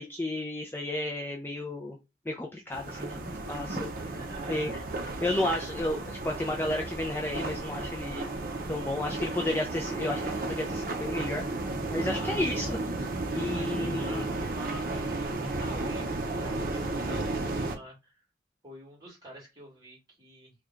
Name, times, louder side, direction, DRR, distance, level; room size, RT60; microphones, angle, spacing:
voice 1, 0.0-2.0 2.3-3.9 4.5-4.8 5.2-8.3 8.7-11.4 11.9-12.8 13.3-14.3, left 1 dB, 10° left, 0 dB, 0.4 m, -32 dB
sound 1, 2.7-17.8, right 2 dB, 50° right, 0.6 m, -33 dB
voice 2, 4.0-4.7 5.7-5.8 8.7-9.4 12.0-12.6 13.5-18.2 18.6-20.5, right 2 dB, 20° right, -4 dB, 1.9 m, -47 dB
3.2 x 2.3 x 3.7 m, 0.25 s
head